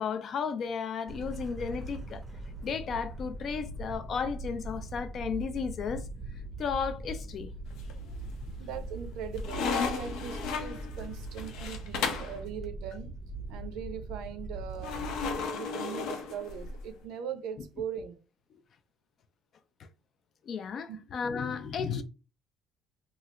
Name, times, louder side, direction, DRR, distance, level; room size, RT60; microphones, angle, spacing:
voice 1, 0.0-2.2 2.6-6.0 6.6-7.5 20.5-22.0, left 6 dB, 45° left, 0.4 m, -34 dB
sound 1, 1.1-15.4, right 2 dB, 15° right, 0.6 m, -41 dB
sound 2, 7.7-8.3 8.7-12.4 14.8-16.9, left 5 dB, 80° left, 0.6 m, -34 dB
voice 2, 8.6-13.1 13.5-15.1 15.5-18.1 20.9-21.0, right 8 dB, 85° right, 0.5 m, -40 dB
3.2 x 2.3 x 2.9 m
cardioid pair, 145°, 0 cm